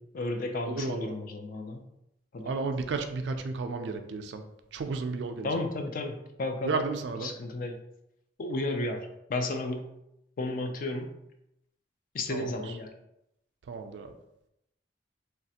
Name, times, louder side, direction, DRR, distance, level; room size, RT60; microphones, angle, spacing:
voice 1, 0.0-1.9 2.3-2.5 5.4-6.8 7.2-7.8 8.4-9.9 10.4-11.2 12.1-12.9, left 2 dB, 50° left, 5 dB, 0.4 m, -33 dB
voice 2, 0.6-1.2 2.5-4.4 4.7-5.5 6.6-7.3 12.3-12.5 13.7-14.1, right 4 dB, 70° right, 7 dB, 0.4 m, -33 dB
3.2 x 2.4 x 2.7 m, 0.82 s
head